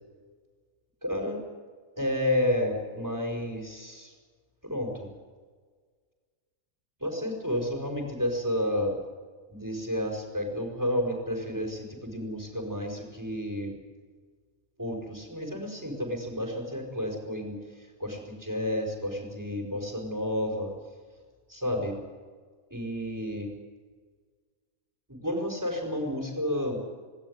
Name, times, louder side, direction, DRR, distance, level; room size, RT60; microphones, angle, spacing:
voice 1, 1.0-1.4 2.0-4.1 4.6-5.1 7.0-9.0 9.5-13.7 14.8-20.7 21.5-21.9 22.7-23.5 25.1-26.8, left 1 dB, 15° right, 1 dB, 5.0 m, -31 dB
18.5 x 18.5 x 9.7 m, 1.5 s
omnidirectional pair, 1.4 m